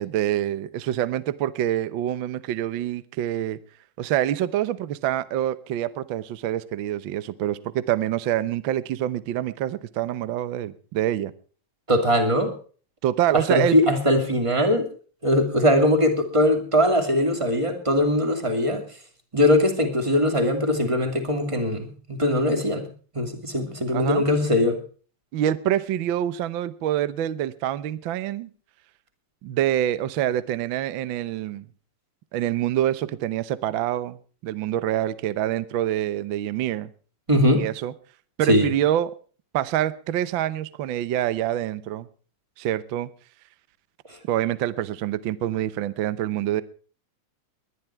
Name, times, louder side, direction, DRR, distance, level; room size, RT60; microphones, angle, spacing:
voice 1, 0.0-3.6 4.0-11.3 13.0-13.8 23.9-24.2 25.3-28.5 29.4-31.6 32.3-36.9 37.6-37.9 38.4-39.1 39.5-42.1 42.6-43.1 44.3-46.6, right 12 dB, 85° right, 16 dB, 1.0 m, -26 dB
voice 2, 11.9-12.5 13.3-14.9 15.2-18.8 19.3-22.9 23.1-24.8 37.3-37.6 38.5-38.7 44.1-44.2, left 1 dB, 10° right, 6 dB, 2.4 m, -21 dB
20.5 x 11.5 x 4.5 m, 0.41 s
omnidirectional pair, 3.4 m